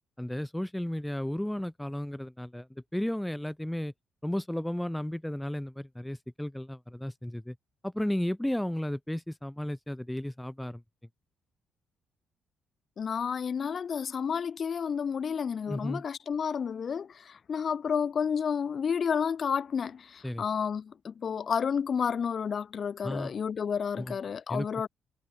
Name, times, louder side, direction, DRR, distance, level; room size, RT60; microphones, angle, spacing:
voice 1, 0.2-2.7 2.9-3.9 4.2-7.5 7.8-10.8 15.7-16.0 20.2-20.4 23.0-23.3 23.9-24.2 24.5-24.9, left 1 dB, 5° left, 1.7 m, -33 dB
voice 2, 13.0-24.9, left 7 dB, 50° left, 3.9 m, -31 dB
cardioid pair, 90°, 0 cm